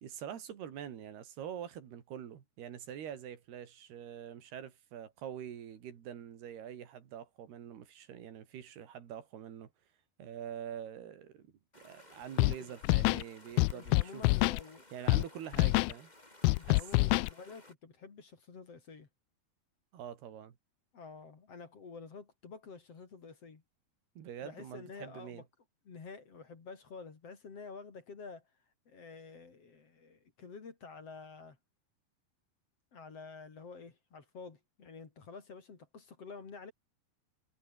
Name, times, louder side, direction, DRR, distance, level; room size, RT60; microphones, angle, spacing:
voice 1, 0.0-9.7 10.2-11.5 11.8-14.2 14.9-16.1 16.6-17.1 19.9-20.6 24.2-25.4, right 9 dB, 85° right, 4.6 m, -45 dB
sound 1, 11.7-17.7, left 1 dB, 10° left, 3.8 m, -58 dB
Scratching (performance technique), 12.4-12.6 12.8-13.2 13.6-14.6 15.1-15.2 15.5-15.9 16.4-17.3, left 23 dB, 80° left, 2.3 m, -26 dB
voice 2, 13.7-14.8 16.5-19.1 20.9-23.6 24.4-25.4 25.9-28.4 28.9-31.6 32.9-36.7, left 4 dB, 40° left, 3.8 m, -49 dB
omnidirectional pair, 4.5 m